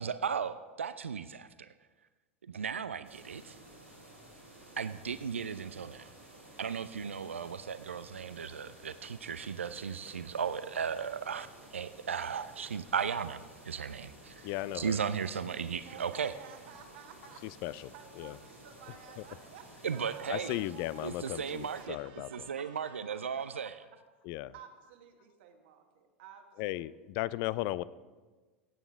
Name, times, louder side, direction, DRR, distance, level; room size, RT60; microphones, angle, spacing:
voice 1, 0.0-1.7 2.4-3.6 4.8-6.1 6.6-11.5 11.7-16.3 19.8-20.6 21.0-22.0 22.3-23.7, right 7 dB, 75° right, 13 dB, 0.4 m, -36 dB
sound 1, 3.0-21.8, right 1 dB, 90° right, 3.2 m, -54 dB
voice 2, 14.4-15.0 17.4-18.4 19.2-19.3 20.3-22.5 24.2-24.5 26.6-27.8, left 16 dB, 40° left, 19 dB, 0.3 m, -36 dB
voice 3, 15.6-23.1 24.4-26.9, right 8 dB, 55° right, 5 dB, 1.3 m, -54 dB
16.0 x 8.9 x 3.5 m, 1.3 s
figure-of-eight pair, 85°, 7 cm